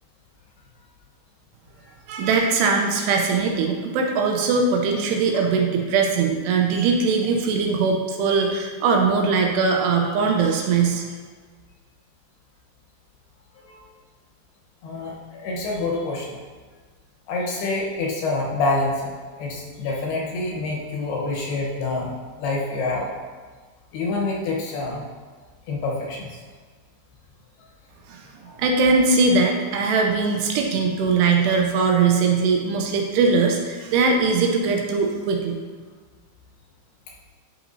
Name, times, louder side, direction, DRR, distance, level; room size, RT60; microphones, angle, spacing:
voice 1, 2.1-11.0 28.6-35.6, right 4 dB, 85° right, 2 dB, 2.6 m, -20 dB
voice 2, 14.8-16.4 17.3-19.1 19.4-23.1 23.9-25.0 25.7-26.3, left 2 dB, 75° left, -3 dB, 2.8 m, -27 dB
11.0 x 5.8 x 2.7 m, 1.5 s
omnidirectional pair, 5.0 m